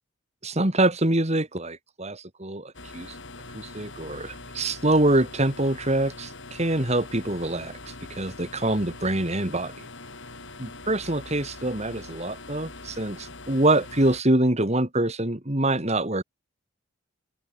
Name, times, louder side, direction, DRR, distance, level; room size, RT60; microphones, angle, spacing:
voice 1, 0.4-3.2 3.5-9.9 10.6-16.2, right 1 dB, 30° right, 2.4 m, -25 dB
sound 1, 2.7-14.2, left 2 dB, 60° left, 7.3 m, -43 dB
open air
head